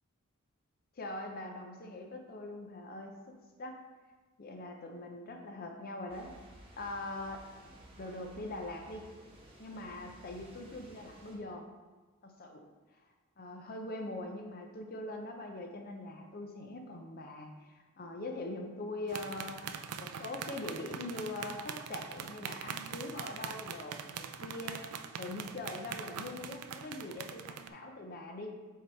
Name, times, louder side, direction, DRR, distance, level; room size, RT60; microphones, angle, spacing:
voice 1, 1.0-3.2 3.6-3.8 4.4-6.3 6.8-7.5 8.0-9.1 9.6-11.7 12.2-12.6 13.4-19.6 20.0-28.5, left 2 dB, 40° left, 3 dB, 0.5 m, -42 dB
sound 1, 6.1-11.4, right 1 dB, 25° right, 1.0 m, -56 dB
sound 2, 19.1-27.7, right 7 dB, 85° right, 0.4 m, -43 dB
6.4 x 3.4 x 4.4 m, 1.3 s
head